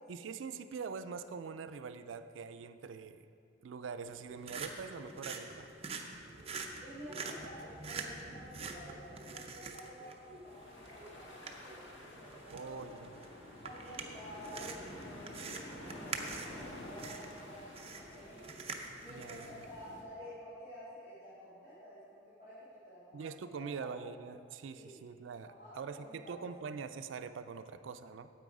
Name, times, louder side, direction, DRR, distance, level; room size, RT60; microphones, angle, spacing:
voice 1, 0.1-3.3 3.6-5.7 12.5-13.1 19.1-19.5 23.1-28.3, right 5 dB, 80° right, 10 dB, 0.4 m, -44 dB
sound 1, 4.1-19.7, right 4 dB, 30° right, 0.7 m, -46 dB
voice 2, 6.8-13.0 13.6-18.4 19.0-24.0 24.7-25.0 25.4-26.3, equal, 50° left, -12 dB, 2.7 m, -51 dB
sound 2, 10.5-20.0, left 1 dB, 80° left, 1.7 m, -50 dB
9.2 x 8.4 x 4.8 m, 2.5 s
head